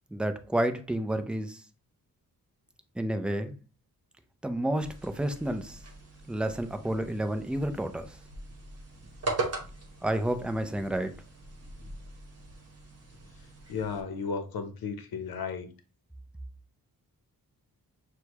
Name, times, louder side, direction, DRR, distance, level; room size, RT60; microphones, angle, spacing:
voice 1, 0.1-1.6 3.0-3.5 4.4-5.8 6.3-8.2 10.0-11.1, right 1 dB, 5° right, 0.4 m, -30 dB
sound 1, 4.8-14.0, right 3 dB, 40° right, 1.1 m, -40 dB
voice 2, 13.7-15.7, left 5 dB, 75° left, 0.8 m, -34 dB
6.3 x 2.3 x 2.9 m
wide cardioid pair, 130°, 36 cm